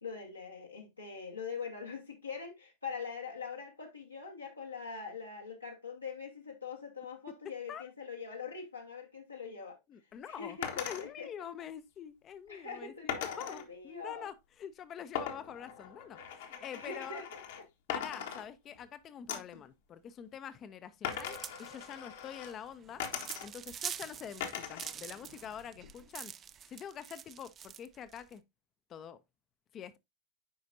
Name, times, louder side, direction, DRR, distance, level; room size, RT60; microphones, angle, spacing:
voice 1, 0.0-9.8 10.3-11.3 12.5-14.3 16.7-17.6, left 5 dB, 80° left, 1.3 m, -43 dB
voice 2, 9.9-17.2 17.9-23.0 23.4-26.3 26.7-28.4 28.9-29.2 29.7-29.9, left 8 dB, 30° left, 0.5 m, -46 dB
sound 1, 10.6-11.1 13.1-13.7 15.2-17.6 17.9-18.9 19.3-19.6 21.0-22.5 23.0-23.7 24.4-24.9 25.3-26.1, left 8 dB, 55° left, 1.1 m, -40 dB
sound 2, 21.1-28.3, right 9 dB, 25° right, 0.4 m, -46 dB
9.3 x 5.0 x 2.6 m
figure-of-eight pair, 90°, 0 cm